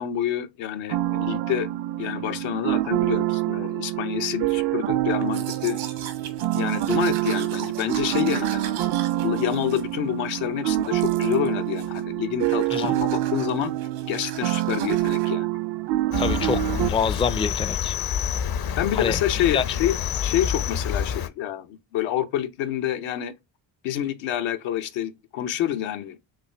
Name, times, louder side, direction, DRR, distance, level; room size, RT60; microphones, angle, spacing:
voice 1, 0.0-1.7 2.0-5.8 6.5-8.7 9.2-13.7 14.1-15.5 18.8-19.9 20.2-23.3 23.8-26.2, left 11 dB, 80° left, 0.8 m, -27 dB
sound 1, 0.9-16.9, right 15 dB, 65° right, 0.6 m, -26 dB
Domestic sounds home sounds, 5.2-10.4 10.8-11.5 11.8-12.1 12.4-15.3, right 9 dB, 80° right, 1.3 m, -40 dB
Cricket, 16.1-21.3, left 8 dB, 55° left, 0.7 m, -28 dB
voice 2, 16.2-17.9 18.9-19.2 19.5-19.6, left 6 dB, 15° left, 0.4 m, -26 dB
5.8 x 2.5 x 3.3 m
supercardioid pair, 70°, 46 cm